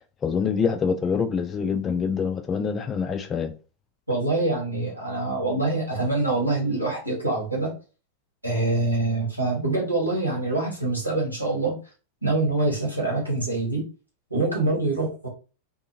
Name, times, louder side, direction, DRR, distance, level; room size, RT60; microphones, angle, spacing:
voice 1, 0.2-3.5, left 6 dB, 20° left, 0.3 m, -25 dB
voice 2, 4.1-7.7 8.4-11.8 12.2-13.8 14.3-15.3, right 2 dB, 90° right, 1.2 m, -25 dB
2.6 x 2.5 x 2.7 m
figure-of-eight pair, 90°, 0 cm